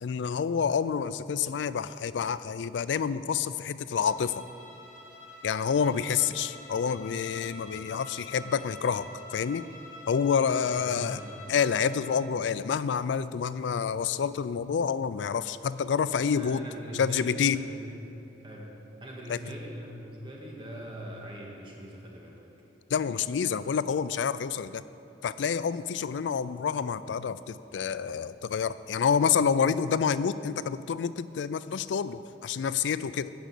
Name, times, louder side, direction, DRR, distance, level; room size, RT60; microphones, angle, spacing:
voice 1, 0.0-4.4 5.4-9.7 10.1-11.2 11.5-16.7 16.9-17.7 19.3-19.4 22.9-24.8 25.2-33.3, left 6 dB, 85° left, 15 dB, 0.4 m, -28 dB
Bowed string instrument, 3.9-12.3, left 2 dB, 45° left, 1.7 m, -47 dB
voice 2, 10.6-11.4 16.4-18.1 18.4-18.7 19.0-22.4, equal, 30° right, -3 dB, 1.6 m, -42 dB
12.5 x 5.2 x 8.3 m, 2.9 s
head